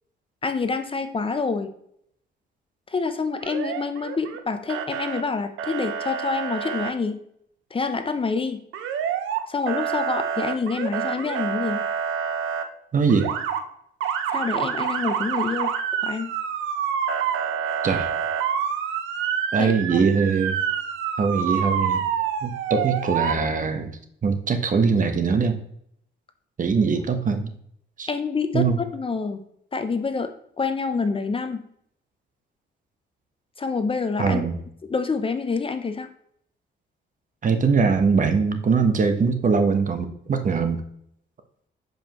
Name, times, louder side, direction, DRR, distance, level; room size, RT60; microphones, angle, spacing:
voice 1, 0.4-1.7 2.9-7.2 7.7-8.6 9.5-11.9 14.3-15.7 16.0-16.3 19.6-20.0 26.9-27.0 28.1-29.4 29.7-30.3 30.6-31.6 33.6-34.4 34.9-36.1, left 4 dB, 25° left, 8 dB, 0.6 m, -27 dB
Motor vehicle (road) / Siren, 3.4-4.4 4.7-5.2 5.6-6.9 8.7-9.4 9.7-12.6 13.1-13.6 14.0-23.3, right 8 dB, 85° right, 0.8 m, -27 dB
voice 2, 12.9-13.3 17.8-18.1 19.5-20.6 21.2-22.0 22.4-23.9 24.2-25.6 26.6-27.5 28.0-28.1 28.5-28.8 34.2-34.5 37.4-40.8, right 5 dB, 40° right, 7 dB, 1.0 m, -22 dB
7.1 x 5.2 x 3.0 m, 0.70 s
cardioid pair, 90°, 20 cm